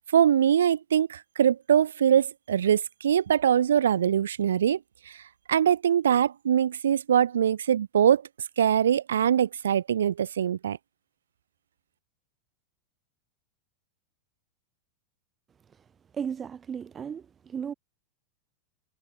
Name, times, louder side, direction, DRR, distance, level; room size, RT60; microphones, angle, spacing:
voice 1, 0.1-4.8 5.1-5.2 5.5-8.2 8.6-10.8, right 9 dB, 65° right, 2.5 m, -23 dB
voice 2, 16.1-17.7, right 7 dB, 20° right, 3.9 m, -35 dB
figure-of-eight pair, 90°, 0 cm